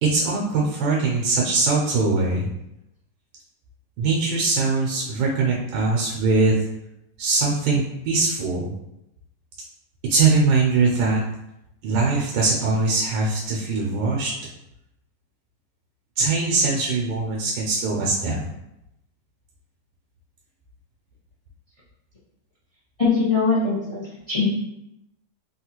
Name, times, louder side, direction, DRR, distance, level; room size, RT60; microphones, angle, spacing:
voice 1, 0.0-2.5 4.0-6.6 7.2-8.7 10.1-11.2 11.8-14.3 16.2-18.4, right 3 dB, 90° right, -2 dB, 1.3 m, -21 dB
voice 2, 23.0-24.5, left 4 dB, 55° left, -8 dB, 0.4 m, -22 dB
3.4 x 2.3 x 2.9 m, 0.86 s
omnidirectional pair, 1.9 m